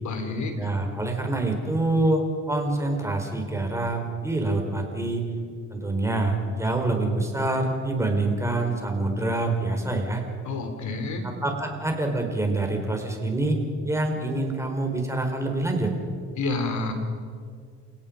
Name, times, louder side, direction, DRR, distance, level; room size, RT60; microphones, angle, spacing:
voice 1, 0.0-0.5 10.4-11.3 16.3-16.9, left 3 dB, 70° left, 6 dB, 3.7 m, -29 dB
voice 2, 0.6-5.2 5.7-10.2 11.2-15.9, right 2 dB, 10° right, 3 dB, 4.5 m, -26 dB
29.5 x 17.5 x 5.3 m, 2.1 s
cardioid pair, 90°, 30 cm